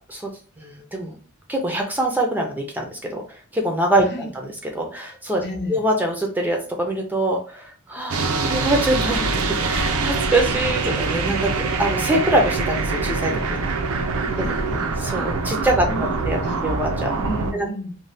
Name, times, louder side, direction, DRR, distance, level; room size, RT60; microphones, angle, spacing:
voice 1, 0.6-1.2 1.5-3.2 3.5-4.0 4.3-5.4 5.7-13.6 14.4-14.5 15.0-15.9 16.3-17.1 17.5-17.7, right 1 dB, 10° right, 1 dB, 0.4 m, -24 dB
voice 2, 5.4-5.8 14.3-14.9 15.8-16.7 17.2-18.0, equal, 50° left, 2 dB, 0.7 m, -32 dB
sound 1, 8.1-17.5, right 4 dB, 75° right, 0.5 m, -24 dB
2.6 x 2.1 x 3.2 m, 0.41 s
head